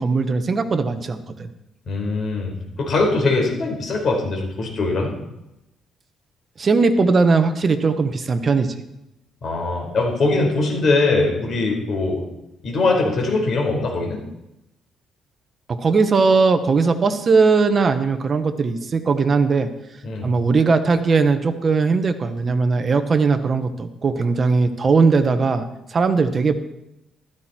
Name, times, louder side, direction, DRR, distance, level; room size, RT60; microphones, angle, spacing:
voice 1, 0.0-1.5 6.6-8.8 15.7-19.7 20.2-26.5, right 4 dB, 30° right, 9 dB, 1.3 m, -19 dB
voice 2, 1.9-2.5 2.8-5.1 9.4-12.2 12.6-14.2 20.0-20.3, left 3 dB, 50° left, 0 dB, 4.9 m, -21 dB
15.0 x 13.5 x 4.5 m, 0.89 s
cardioid pair, 135°, 0 cm